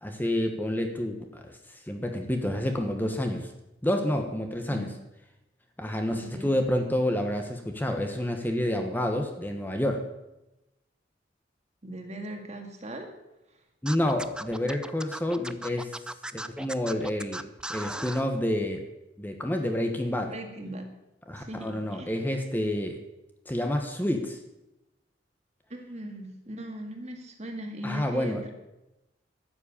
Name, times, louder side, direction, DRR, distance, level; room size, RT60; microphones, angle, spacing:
voice 1, 0.0-1.6 1.9-3.5 3.8-4.9 5.8-10.1 13.8-16.0 16.3-17.4 17.7-18.8 19.2-20.3 21.3-23.0 23.5-24.4 27.8-28.4, left 1 dB, 10° left, 4 dB, 1.2 m, -29 dB
voice 2, 6.1-6.5 11.8-13.1 20.2-20.9 21.4-22.2 25.7-28.5, right 1 dB, 40° right, 4 dB, 2.0 m, -39 dB
Scratching (performance technique), 13.9-18.2, right 1 dB, 5° right, 0.5 m, -37 dB
12.5 x 7.8 x 8.5 m, 0.96 s
head